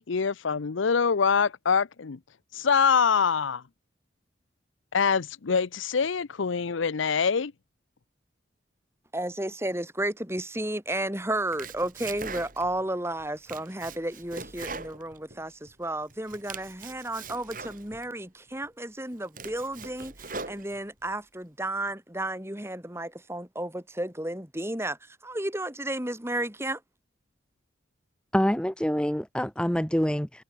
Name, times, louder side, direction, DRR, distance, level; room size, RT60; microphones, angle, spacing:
voice 1, 0.0-2.2 2.5-3.6 4.9-7.5, left 6 dB, 90° left, 0.6 m, -24 dB
voice 2, 9.1-26.8, right 1 dB, 15° right, 3.0 m, -33 dB
Domestic sounds home sounds, 11.3-12.8 13.2-15.7 16.1-18.1 18.6-18.7 19.1-21.1, right 4 dB, 45° right, 6.1 m, -41 dB
voice 3, 28.3-30.4, equal, 5° left, 0.8 m, -26 dB
head